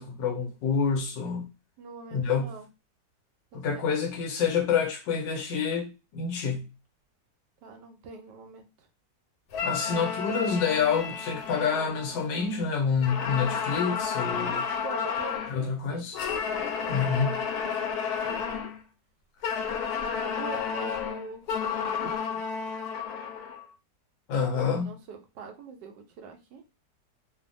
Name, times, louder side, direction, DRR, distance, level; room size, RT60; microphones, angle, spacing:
voice 1, 0.0-1.5 2.1-2.5 3.5-6.7 9.6-14.7 15.5-16.2 16.9-17.5 24.3-24.9, left 6 dB, 90° left, 1.4 m, -28 dB
voice 2, 1.8-2.7 3.5-3.9 7.6-8.9 14.8-16.1 17.6-18.7 20.0-22.2 24.5-26.6, right 4 dB, 80° right, 1.2 m, -43 dB
sound 1, 9.5-12.6 13.0-15.6 16.1-18.8 19.4-23.6, left 6 dB, 70° left, 1.0 m, -32 dB
3.2 x 2.1 x 2.6 m
omnidirectional pair, 1.9 m